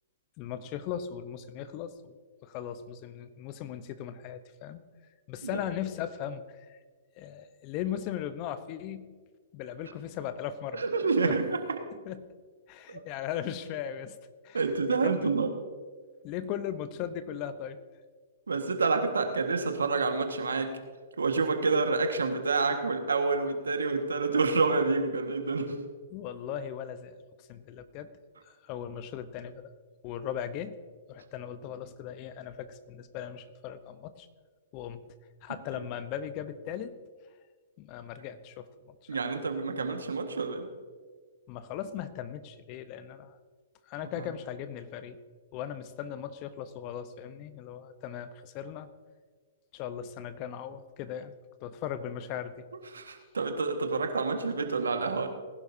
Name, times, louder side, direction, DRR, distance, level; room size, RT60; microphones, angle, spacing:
voice 1, 0.4-2.2 2.4-4.8 5.3-6.8 7.2-9.1 9.5-11.4 12.0-12.3 12.7-14.2 14.4-14.6 14.9-15.5 16.2-17.8 26.1-28.1 28.4-29.7 30.0-30.8 31.1-34.3 34.7-35.0 35.4-37.0 37.8-39.2 41.5-43.4 43.9-45.2 45.5-48.9 49.7-51.3 51.6-52.7, left 9 dB, 40° left, 12 dB, 0.9 m, -38 dB
voice 2, 10.7-11.6 14.5-15.5 18.5-20.7 21.2-25.7 39.1-40.6 44.2-44.3 52.9-55.3, right 4 dB, 90° right, 5 dB, 1.6 m, -28 dB
19.5 x 11.5 x 2.8 m, 1.5 s
hypercardioid pair, 125°, 0 cm